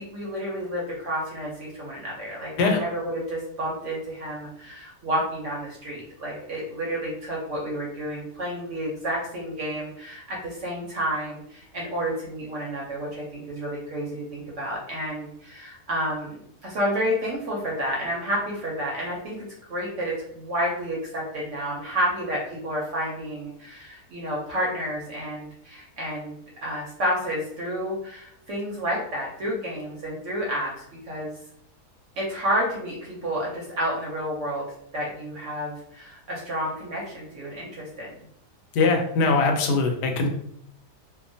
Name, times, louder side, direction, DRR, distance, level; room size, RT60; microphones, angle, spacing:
voice 1, 0.0-31.3 32.2-34.7 34.9-38.1, equal, 65° right, -3 dB, 0.8 m, -30 dB
voice 2, 38.7-40.3, left 3 dB, 80° left, 3 dB, 1.1 m, -21 dB
2.8 x 2.1 x 2.6 m, 0.71 s
omnidirectional pair, 1.7 m